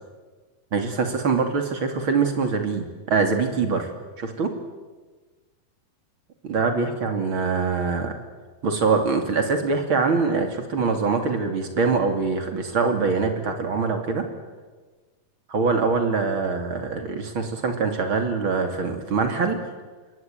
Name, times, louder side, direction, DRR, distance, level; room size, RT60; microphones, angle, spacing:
voice 1, 0.7-3.9 4.2-4.5 6.4-8.1 8.6-14.2 15.5-19.6, right 4 dB, 35° right, 5 dB, 3.2 m, -23 dB
27.0 x 21.5 x 9.3 m, 1.4 s
omnidirectional pair, 4.4 m